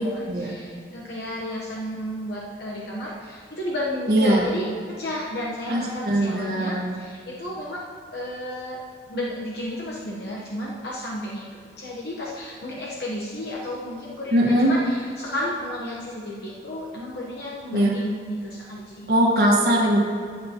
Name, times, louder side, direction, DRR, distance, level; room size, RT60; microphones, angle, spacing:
voice 1, 0.0-8.8 9.1-11.5 11.8-19.1, left 1 dB, 60° left, -4 dB, 1.0 m, -32 dB
voice 2, 4.1-4.4 5.7-7.0 14.3-14.7 17.7-18.0 19.1-20.0, right 1 dB, 55° right, -3 dB, 1.5 m, -20 dB
14.5 x 7.7 x 2.9 m, 2.1 s
head